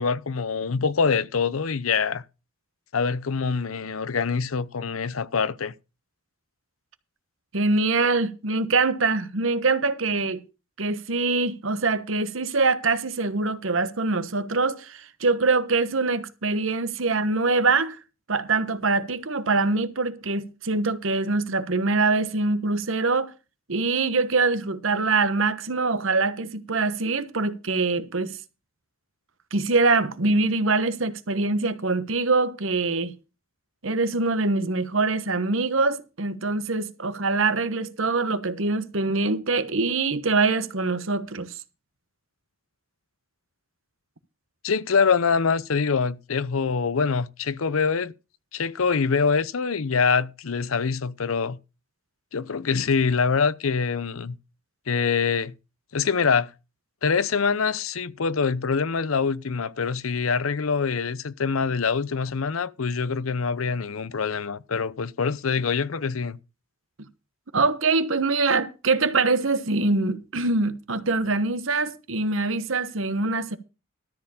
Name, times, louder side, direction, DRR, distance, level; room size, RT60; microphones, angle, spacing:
voice 1, 0.0-2.2 2.9-5.7 44.6-48.1 48.5-51.6 52.3-54.4 54.9-55.5 55.9-56.5 57.0-66.4, left 5 dB, 85° left, 0.7 m, -24 dB
voice 2, 7.5-10.4 10.8-18.0 18.3-23.3 23.7-28.4 29.5-33.1 33.8-41.6 67.5-73.6, right 3 dB, 70° right, 1.2 m, -24 dB
13.0 x 4.6 x 8.6 m
head